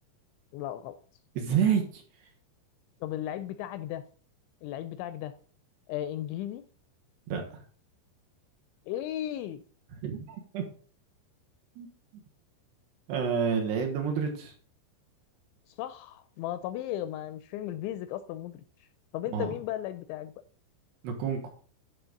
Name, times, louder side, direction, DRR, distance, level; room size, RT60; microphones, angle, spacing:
voice 1, 0.5-1.0 3.0-4.0 4.6-5.3 5.9-6.6 8.9-9.6 15.7-18.9 19.1-20.3, left 12 dB, 85° left, 11 dB, 2.7 m, -35 dB
voice 2, 1.4-2.0 7.3-7.6 10.0-10.6 11.8-11.9 12.1-12.2 13.1-14.5 19.3-19.6 21.0-21.5, right 7 dB, 65° right, 2 dB, 3.1 m, -29 dB
11.5 x 4.1 x 5.2 m, 0.43 s
omnidirectional pair, 5.6 m